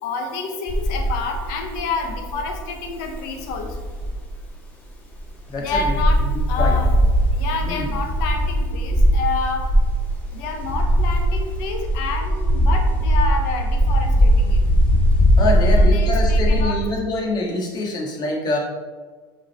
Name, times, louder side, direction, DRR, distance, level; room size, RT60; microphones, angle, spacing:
voice 1, 0.0-3.8 5.6-6.2 6.5-7.1 7.3-9.7 10.3-14.6 15.4-16.8, left 4 dB, 65° left, 3 dB, 1.2 m, -28 dB
sound 1, 0.7-4.3 4.9-5.0 5.1-5.2 5.6-16.6, equal, 15° left, 1.7 m, -19 dB
voice 2, 5.5-6.0 6.2-6.8 7.6-8.0 15.4-18.6, left 2 dB, 40° left, -1 dB, 1.8 m, -25 dB
6.5 x 4.1 x 4.3 m, 1.4 s
hypercardioid pair, 100°, 11 cm